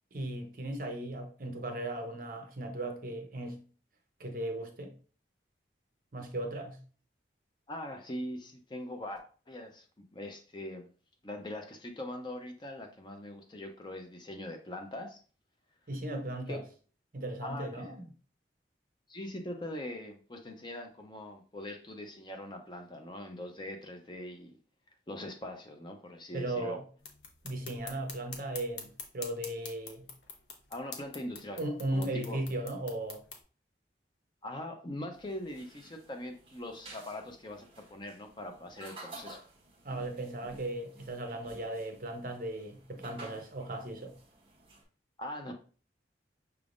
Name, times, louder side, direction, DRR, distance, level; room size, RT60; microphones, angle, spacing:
voice 1, 0.1-3.6 4.2-4.9 6.1-6.8 15.9-16.6 17.1-18.1 26.3-26.8 27.4-30.1 31.6-33.2 39.8-44.1, right 1 dB, 50° right, 0.7 m, -37 dB
voice 2, 7.7-9.9 10.1-10.9 11.2-15.2 16.5-16.6 17.4-17.9 19.1-24.5 25.1-26.8 30.7-31.6 31.9-32.4 34.4-39.4 45.2-45.5, left 1 dB, 25° left, 0.6 m, -42 dB
sound 1, 27.0-33.4, left 5 dB, 70° left, 0.9 m, -47 dB
sound 2, 35.1-44.8, right 2 dB, 30° right, 1.2 m, -53 dB
5.8 x 3.5 x 2.5 m
head